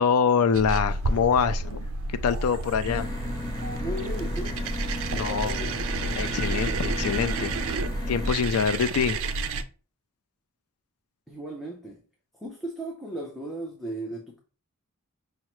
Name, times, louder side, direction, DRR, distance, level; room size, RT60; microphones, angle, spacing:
voice 1, 0.0-3.1 5.1-5.6 6.1-7.5 8.1-9.2, left 6 dB, 75° left, 0.4 m, -25 dB
sound 1, 0.5-9.6, right 3 dB, 65° right, 0.4 m, -31 dB
sound 2, 2.8-8.3, left 1 dB, 20° left, 0.9 m, -33 dB
voice 2, 3.8-4.6 5.1-5.7 11.3-12.0 12.3-14.4, right 1 dB, ahead, 0.5 m, -36 dB
5.6 x 2.1 x 3.0 m
head